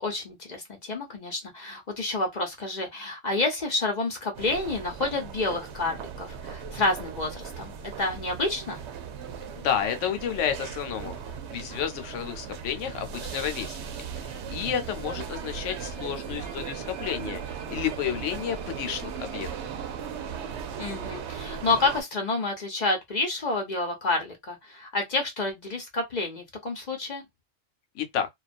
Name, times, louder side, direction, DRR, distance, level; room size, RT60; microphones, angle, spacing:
voice 1, 0.0-8.8 20.8-27.2, left 2 dB, 45° left, 0.6 m, -29 dB
sound 1, 4.3-22.0, right 7 dB, 70° right, 0.8 m, -37 dB
voice 2, 9.6-11.2 11.5-13.8 14.2-19.5 27.9-28.3, left 9 dB, 75° left, 0.9 m, -31 dB
2.3 x 2.2 x 2.4 m
omnidirectional pair, 1.3 m